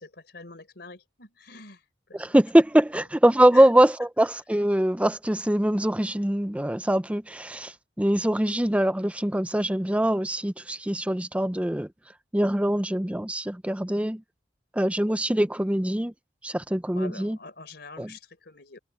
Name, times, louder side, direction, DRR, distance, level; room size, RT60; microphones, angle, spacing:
voice 1, 0.0-1.8 2.1-2.2 3.5-3.7 16.9-18.8, left 3 dB, 65° left, 4.5 m, -45 dB
voice 2, 2.1-11.9 12.3-14.2 14.7-16.1 16.4-17.4 18.0-18.1, right 1 dB, 5° right, 0.6 m, -23 dB
head